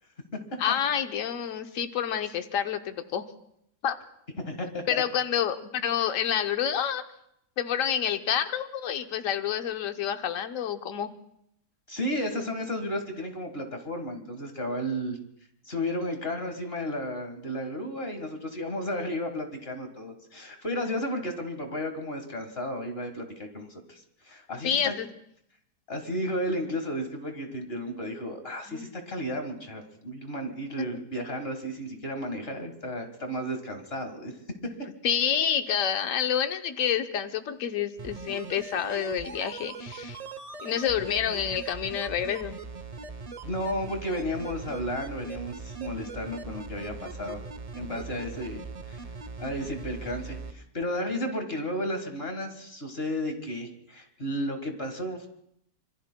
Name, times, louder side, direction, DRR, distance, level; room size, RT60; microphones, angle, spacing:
voice 1, 0.6-3.3 3.8-4.0 4.9-7.0 7.6-11.1 24.6-25.1 28.6-28.9 30.8-31.0 35.0-40.2 40.6-42.6, left 9 dB, 55° left, 8 dB, 1.1 m, -28 dB
voice 2, 4.4-5.0 11.9-15.2 15.6-24.9 25.9-34.3 34.6-34.7 43.4-47.4 47.7-48.6 48.9-49.0 49.4-55.3, equal, 35° left, 5 dB, 1.7 m, -33 dB
sound 1, 38.0-50.5 50.8-50.9, right 4 dB, 75° right, 0.3 m, -40 dB
26.5 x 23.5 x 2.2 m, 0.74 s
omnidirectional pair, 1.9 m